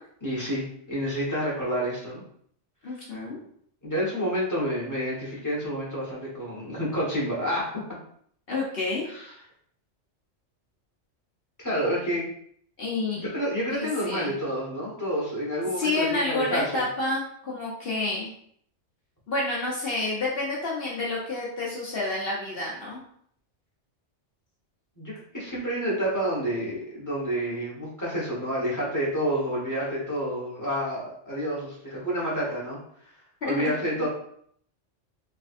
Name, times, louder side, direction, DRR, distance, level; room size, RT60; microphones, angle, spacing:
voice 1, 0.2-2.2 3.8-7.8 9.1-9.2 11.6-12.3 13.1-16.8 25.0-32.8 33.4-34.1, equal, 15° left, -7 dB, 1.2 m, -29 dB
voice 2, 2.8-3.4 8.5-9.1 12.8-13.2 13.7-14.3 15.8-18.3 19.3-23.0 33.4-34.1, left 2 dB, 55° left, -4 dB, 0.9 m, -29 dB
3.3 x 3.2 x 2.5 m, 0.64 s
omnidirectional pair, 1.2 m